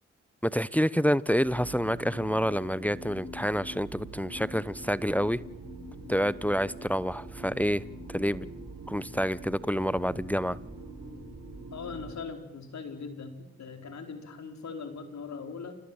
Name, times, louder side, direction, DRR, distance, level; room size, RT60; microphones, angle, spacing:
voice 1, 0.4-5.4 6.1-7.8 8.1-8.5 8.9-10.6, equal, 5° left, 19 dB, 0.9 m, -28 dB
sound 1, 1.4-12.1, right 2 dB, 80° right, 6.6 m, -44 dB
Boat Water vehicle / Engine, 3.4-12.3, right 2 dB, 15° right, 3.8 m, -53 dB
voice 2, 11.7-15.8, left 5 dB, 65° left, 6 dB, 4.6 m, -40 dB
29.0 x 18.5 x 9.0 m, 0.91 s
supercardioid pair, 45°, 29 cm